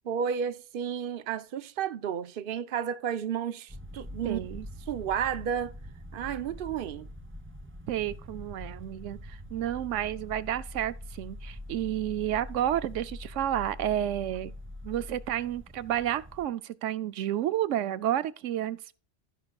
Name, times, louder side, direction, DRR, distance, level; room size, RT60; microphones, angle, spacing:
voice 1, 0.1-4.4 4.9-5.7 6.1-7.1, right 8 dB, 55° right, 0.8 m, -32 dB
sound 1, 3.7-16.5, left 1 dB, 15° right, 0.6 m, -44 dB
voice 2, 4.2-4.7 7.9-14.5 14.8-18.9, right 11 dB, 90° right, 0.9 m, -31 dB
16.0 x 6.5 x 2.3 m
omnidirectional pair, 1.3 m